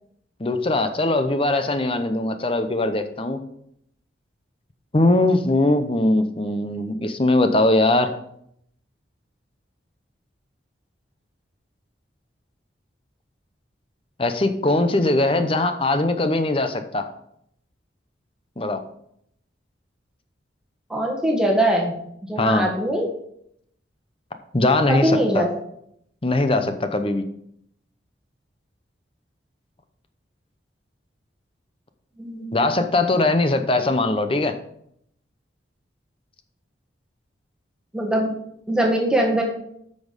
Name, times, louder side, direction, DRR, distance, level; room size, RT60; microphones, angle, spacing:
voice 1, 0.4-3.4 4.9-8.1 14.2-17.1 18.6-18.8 22.4-22.7 24.5-25.5 26.2-27.3 32.5-34.6, left 2 dB, 30° left, 8 dB, 0.7 m, -21 dB
voice 2, 20.9-22.0 22.3-23.1 24.9-25.5 32.2-32.8 37.9-38.3 38.7-39.4, right 1 dB, 5° right, -1 dB, 1.5 m, -22 dB
8.5 x 6.4 x 5.2 m, 0.72 s
head